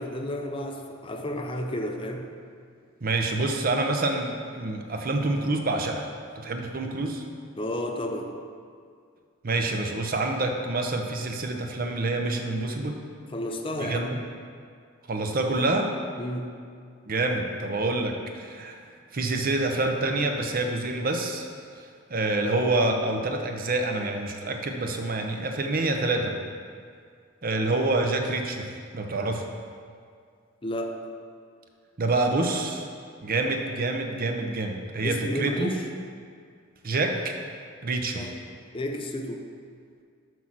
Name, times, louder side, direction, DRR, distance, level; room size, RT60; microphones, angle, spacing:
voice 1, 0.0-2.3 7.6-8.4 13.3-14.2 16.2-16.5 30.6-31.0 35.0-35.9 38.1-38.3 38.7-39.5, left 1 dB, 25° left, 3 dB, 0.7 m, -32 dB
voice 2, 3.0-6.1 6.4-7.2 9.4-13.0 13.8-14.2 15.1-15.9 17.1-18.8 19.1-21.5 22.1-26.4 27.4-29.5 32.0-32.9 33.2-35.7 36.8-37.3 37.8-38.3, right 2 dB, 45° right, 3 dB, 0.7 m, -27 dB
6.2 x 5.5 x 6.0 m, 2.2 s
head